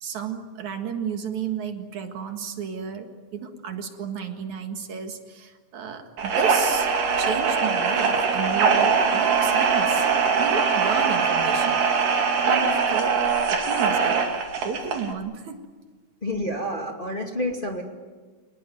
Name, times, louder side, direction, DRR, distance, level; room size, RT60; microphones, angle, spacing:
voice 1, 0.0-6.9 7.2-10.1 10.4-11.8 12.4-13.2 13.5-14.1 14.6-15.5, right 6 dB, 65° right, 5 dB, 3.1 m, -32 dB
sound 1, 6.2-15.1, right 5 dB, 85° right, 4.0 m, -22 dB
voice 2, 16.2-17.8, left 1 dB, 15° left, 1 dB, 2.3 m, -29 dB
27.5 x 19.5 x 9.3 m, 1.3 s
omnidirectional pair, 3.6 m